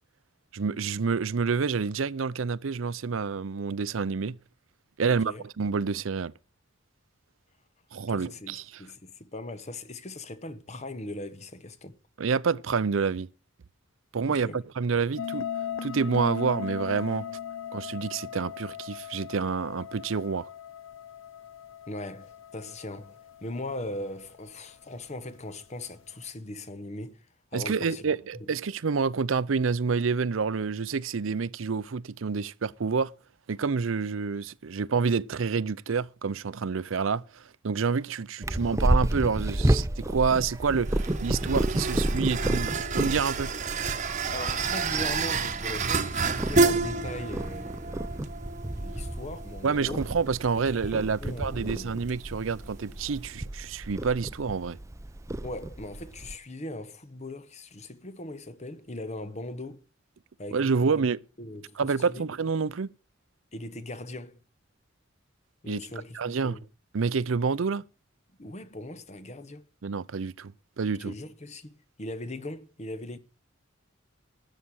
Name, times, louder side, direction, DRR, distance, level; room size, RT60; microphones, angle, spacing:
voice 1, 0.5-4.4 5.0-6.3 7.9-8.8 12.2-13.3 14.1-15.5 15.8-17.3 17.7-20.5 27.5-33.1 33.5-43.5 49.6-54.8 60.5-61.2 61.8-62.9 65.7-65.8 66.1-66.6 66.9-67.8 69.8-70.5 70.8-71.1, right 5 dB, 85° right, 0.6 m, -28 dB
voice 2, 5.0-5.4 8.1-12.0 14.3-14.6 21.9-27.3 27.5-28.5 44.3-48.1 48.8-50.0 50.6-50.8 51.2-51.9 55.4-59.8 60.4-61.0 61.4-62.3 63.5-64.4 65.6-66.6 68.4-69.7 71.0-73.2, left 1 dB, 35° left, 1.0 m, -39 dB
sound 1, 15.2-24.5, left 8 dB, 85° left, 0.7 m, -38 dB
Purr, 38.4-56.4, right 1 dB, 15° right, 0.6 m, -31 dB
sound 2, 40.0-53.3, right 4 dB, 40° right, 1.1 m, -31 dB
13.0 x 8.3 x 6.2 m
head